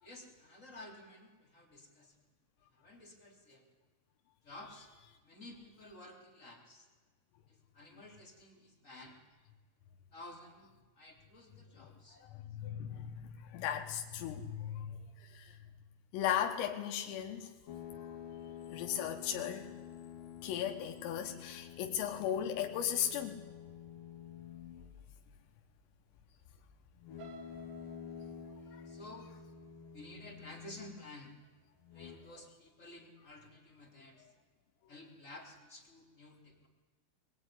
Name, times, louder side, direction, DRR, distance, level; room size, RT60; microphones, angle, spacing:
voice 1, 0.0-2.2 2.7-3.6 4.4-4.9 5.2-6.9 7.5-9.2 10.1-12.2 28.5-29.3 29.9-31.3 31.9-34.2 34.9-36.7, left 1 dB, 20° left, 2.8 m, -53 dB
voice 2, 12.2-15.6 16.1-17.5 18.7-19.7 20.4-23.4 28.7-28.8, left 9 dB, 85° left, 4.0 m, -37 dB
sound 1, 17.7-25.0 27.0-31.1 31.8-32.2, left 9 dB, 55° left, 2.9 m, -49 dB
sound 2, 27.2-31.1 31.6-31.9 32.3-32.4, right 7 dB, 75° right, 4.3 m, -57 dB
22.0 x 21.0 x 9.9 m
omnidirectional pair, 5.9 m